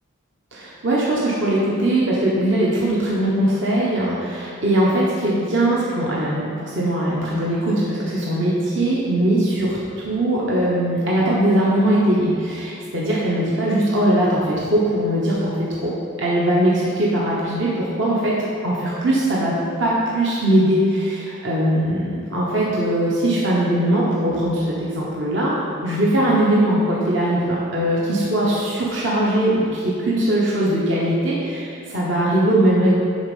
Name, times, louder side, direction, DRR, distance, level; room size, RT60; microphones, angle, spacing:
voice 1, 0.5-9.8 10.0-18.4 18.6-32.9, right 1 dB, 60° right, -6 dB, 1.1 m, -20 dB
9.5 x 4.2 x 5.5 m, 2.4 s
head